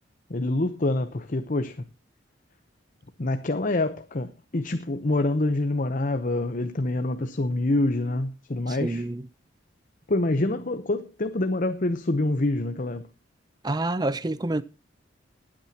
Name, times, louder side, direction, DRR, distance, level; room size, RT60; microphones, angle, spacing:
voice 1, 0.3-1.8 3.2-9.1 10.1-13.1, left 2 dB, 45° left, 0.8 m, -26 dB
voice 2, 8.8-9.2 13.6-14.6, right 2 dB, 20° right, 0.6 m, -27 dB
19.5 x 8.8 x 2.9 m
head